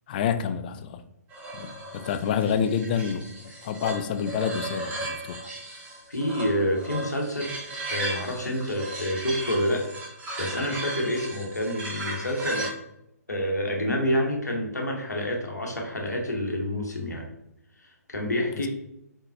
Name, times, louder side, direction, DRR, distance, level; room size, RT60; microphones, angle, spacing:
voice 1, 0.1-1.0 1.5-5.5 18.6-18.7, left 7 dB, 35° left, 0.4 m, -28 dB
sound 1, 1.3-12.7, right 2 dB, 15° right, 1.1 m, -36 dB
voice 2, 6.1-9.8 10.4-12.7 13.3-17.2 17.8-18.7, equal, 85° left, 1.1 m, -28 dB
4.6 x 3.8 x 2.7 m
figure-of-eight pair, 130°, 9 cm